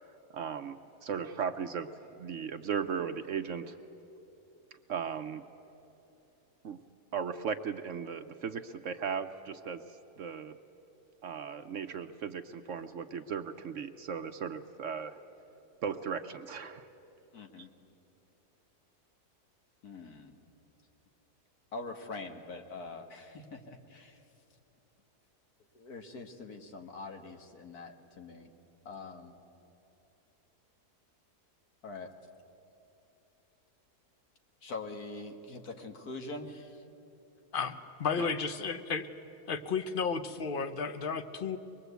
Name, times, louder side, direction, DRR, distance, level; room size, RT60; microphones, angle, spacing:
voice 1, 0.3-3.8 4.9-5.4 6.6-6.8 7.1-10.6 11.2-15.2 15.8-16.9 17.6-17.7 38.2-38.3, right 6 dB, 60° right, 9 dB, 0.9 m, -37 dB
voice 2, 17.3-17.7 19.8-20.3 21.7-24.2 25.7-28.5 28.9-29.3 31.8-32.1 34.6-36.8, left 3 dB, 70° left, 4 dB, 2.0 m, -44 dB
voice 3, 37.5-39.1 39.5-41.6, left 5 dB, 45° left, 10 dB, 0.8 m, -33 dB
24.0 x 21.5 x 8.1 m, 2.9 s
omnidirectional pair, 1.7 m